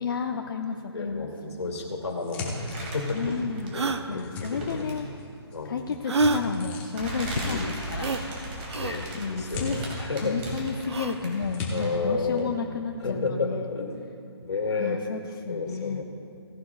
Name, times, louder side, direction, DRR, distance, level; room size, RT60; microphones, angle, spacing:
voice 1, 0.0-1.3 3.1-3.7 4.1-5.1 5.6-8.2 9.1-9.8 10.2-13.7 14.8-15.2 15.5-16.0, left 5 dB, 50° left, 4 dB, 0.7 m, -32 dB
voice 2, 0.9-3.4 3.7-4.9 5.5-5.8 7.4-7.7 8.8-10.7 11.7-12.5 13.0-13.9 14.4-15.0 15.5-16.0, left 4 dB, 80° left, 1 dB, 2.3 m, -31 dB
sound 1, 1.6-3.4 3.8-5.3 5.5-7.2 8.2-8.7 9.1-10.8 11.1-11.7, left 4 dB, 10° left, 1.1 m, -38 dB
sound 2, 2.4-4.0 4.4-5.1 6.1-6.2 6.9-12.1 12.4-12.5, right 1 dB, 25° right, 2.3 m, -37 dB
sound 3, 2.7-2.8 3.7-4.0 6.0-6.4 8.0-8.2 8.7-9.0 10.8-11.2, right 3 dB, 75° right, 0.8 m, -26 dB
17.0 x 11.5 x 2.4 m, 2.6 s
hypercardioid pair, 165°, 14 cm